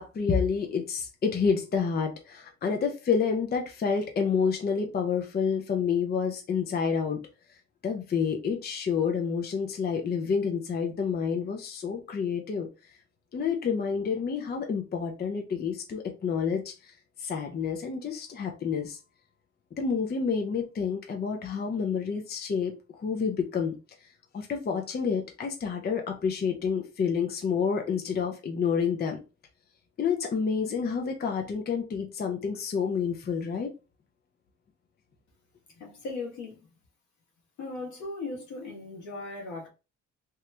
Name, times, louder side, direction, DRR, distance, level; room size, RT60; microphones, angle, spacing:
voice 1, 0.0-7.3 7.8-12.7 13.3-19.0 19.8-23.8 24.0-24.1 24.3-29.2 30.0-33.7, left 6 dB, 35° left, 0.5 m, -29 dB
voice 2, 35.8-36.6 37.6-39.7, left 3 dB, 75° left, 1.3 m, -37 dB
3.0 x 2.3 x 3.2 m
cardioid pair, 90°, 30 cm